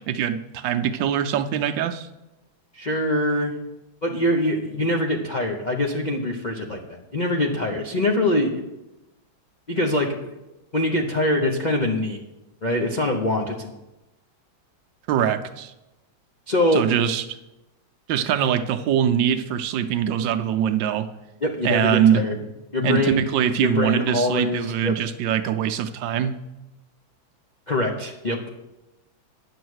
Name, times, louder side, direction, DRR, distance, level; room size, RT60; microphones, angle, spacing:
voice 1, 0.0-2.1 15.1-15.7 16.7-17.4 18.1-21.1 21.6-22.2 22.8-26.3, right 9 dB, 75° right, 9 dB, 1.2 m, -23 dB
voice 2, 2.7-3.6 4.0-8.6 9.7-10.4 10.7-12.2 12.6-13.7 16.5-16.8 21.4-22.4 22.7-23.2 23.6-25.0 27.7-28.6, left 1 dB, 60° left, 0 dB, 0.4 m, -23 dB
10.0 x 7.0 x 6.3 m, 0.98 s
omnidirectional pair, 2.2 m